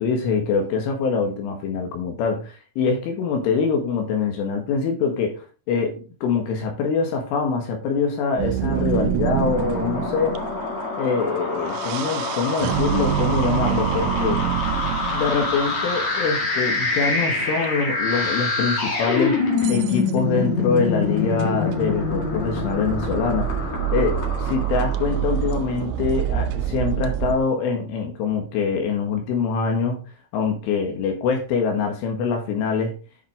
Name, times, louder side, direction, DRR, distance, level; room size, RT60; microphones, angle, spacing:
voice 1, 0.0-10.4 11.0-14.5 14.9-30.0 30.3-33.0, left 5 dB, 75° left, 3.8 m, -24 dB
sound 1, 8.4-10.6 11.6-16.0 17.6-17.7 18.4-18.5 19.6-20.1 20.8-27.4, right 11 dB, 90° right, 2.5 m, -27 dB
sound 2, 9.2-25.6, left 3 dB, 45° left, 2.4 m, -26 dB
10.5 x 5.8 x 3.5 m
omnidirectional pair, 5.9 m